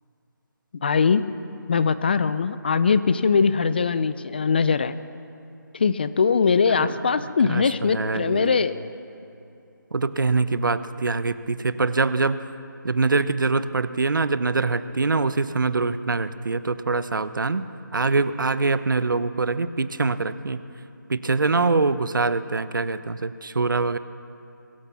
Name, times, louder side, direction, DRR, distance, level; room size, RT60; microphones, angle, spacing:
voice 1, 0.8-1.2 1.7-5.0 5.7-8.8, left 5 dB, 30° left, 14 dB, 0.5 m, -21 dB
voice 2, 6.7-7.0 7.4-8.6 9.9-12.4 12.8-17.7 17.9-20.6 21.1-24.0, right 3 dB, 70° right, 14 dB, 0.9 m, -24 dB
22.0 x 16.5 x 7.1 m, 2.7 s
figure-of-eight pair, 165°, 11 cm